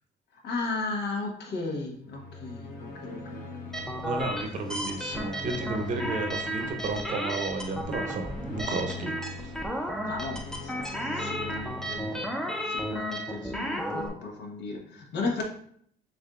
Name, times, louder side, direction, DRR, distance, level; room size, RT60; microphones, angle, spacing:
voice 1, 0.4-4.3 8.7-9.1 10.1-12.2 12.6-15.4, left 3 dB, 80° left, 0 dB, 1.2 m, -36 dB
sound 1, 2.0-13.3, left 3 dB, 55° left, 1.0 m, -42 dB
sound 2, 3.7-14.1, equal, 5° left, 0.5 m, -34 dB
voice 2, 4.0-9.1 9.4-9.6, right 3 dB, 50° right, 5 dB, 0.7 m, -33 dB
6.9 x 2.6 x 2.4 m, 0.64 s
cardioid pair, 110°, 17 cm